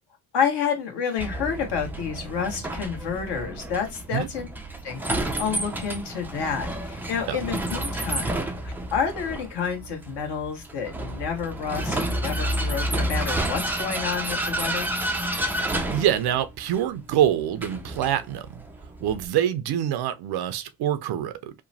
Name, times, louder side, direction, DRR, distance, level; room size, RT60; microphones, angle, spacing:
voice 1, 0.3-4.5 4.8-8.4 8.6-14.9, left 7 dB, 55° left, 1.3 m, -29 dB
Vehicle, 1.2-19.3, right 1 dB, 5° right, 0.4 m, -30 dB
voice 2, 15.6-18.6 19.0-21.5, right 11 dB, 55° right, 0.5 m, -25 dB
3.0 x 2.1 x 2.6 m
supercardioid pair, 85°, 48 cm